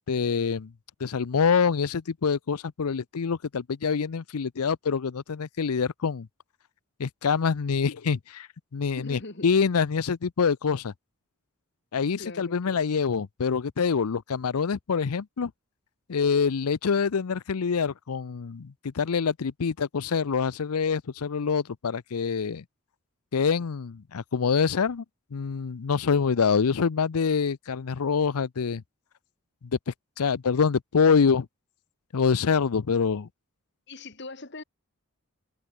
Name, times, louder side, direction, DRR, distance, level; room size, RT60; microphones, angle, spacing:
voice 1, 0.1-0.7 1.0-6.3 7.0-8.5 8.7-10.9 11.9-15.5 16.1-22.6 23.3-25.0 25.3-28.8 29.9-31.5 32.1-33.3, left 6 dB, 85° left, 0.6 m, -25 dB
voice 2, 8.9-9.5 12.2-12.8 33.1-33.3 33.9-34.6, left 2 dB, 50° left, 2.1 m, -41 dB
head